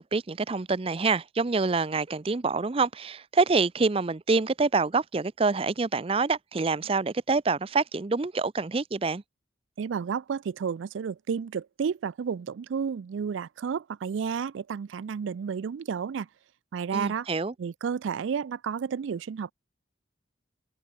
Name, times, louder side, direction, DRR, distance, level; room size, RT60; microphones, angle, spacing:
voice 1, 0.0-9.2 16.9-17.5, right 4 dB, 30° right, 0.5 m, -26 dB
voice 2, 9.8-16.3 16.7-17.3 17.6-19.5, right 6 dB, 90° right, 0.4 m, -31 dB
open air
head